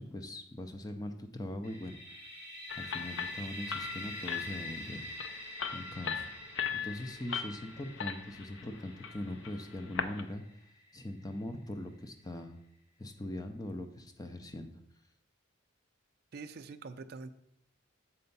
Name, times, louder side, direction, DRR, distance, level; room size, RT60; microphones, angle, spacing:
voice 1, 0.0-2.2 2.8-5.1 5.7-6.3 6.6-10.4 10.9-12.6 13.0-14.8, left 1 dB, 20° left, 6 dB, 0.6 m, -41 dB
sound 1, 1.6-11.3, left 1 dB, 50° left, 1.7 m, -46 dB
sound 2, 2.7-10.2, left 7 dB, 65° left, 0.5 m, -39 dB
voice 2, 16.3-17.3, right 4 dB, 50° right, 7 dB, 0.4 m, -44 dB
6.9 x 4.3 x 5.4 m, 0.78 s
head